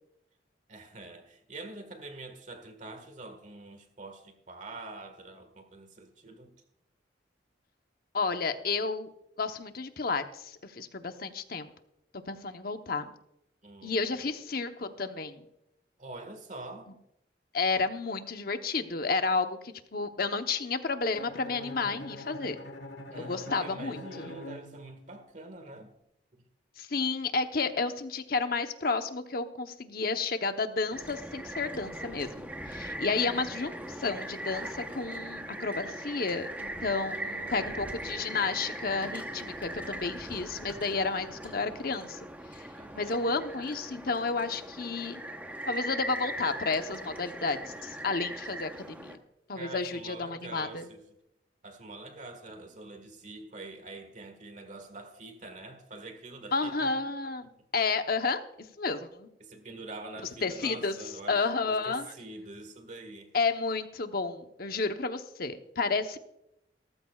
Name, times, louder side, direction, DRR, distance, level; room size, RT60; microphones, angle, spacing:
voice 1, 0.7-6.5 13.6-14.3 16.0-16.9 23.1-25.9 37.0-37.7 42.7-43.3 49.5-51.0 51.6-56.9 59.4-63.3, right 2 dB, 45° right, 1.7 m, -45 dB
voice 2, 8.1-9.1 9.4-11.7 12.3-13.1 13.8-15.4 17.5-22.6 23.1-24.3 26.8-33.7 34.0-42.2 42.5-42.7 42.9-45.2 45.7-49.2 49.5-50.9 56.5-58.4 58.8-59.3 60.4-61.0 61.3-62.1 63.3-66.2, left 4 dB, 55° left, 0.9 m, -31 dB
Bowed string instrument, 21.1-25.3, left 1 dB, 70° left, 1.5 m, -44 dB
sound 1, 30.9-49.2, right 1 dB, 10° right, 0.9 m, -40 dB
17.5 x 14.5 x 2.4 m
head